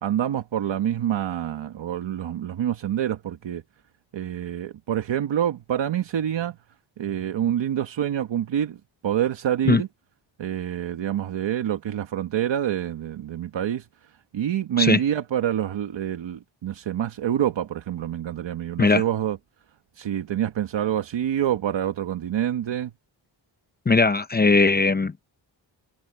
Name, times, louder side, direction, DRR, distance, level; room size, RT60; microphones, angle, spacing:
voice 1, 0.0-3.6 4.1-6.6 7.0-9.9 10.4-19.4 19.9-22.9, right 10 dB, 70° right, 1.3 m, -27 dB
voice 2, 23.9-25.3, left 3 dB, 20° left, 0.7 m, -19 dB
wide cardioid pair, 175°, 46 cm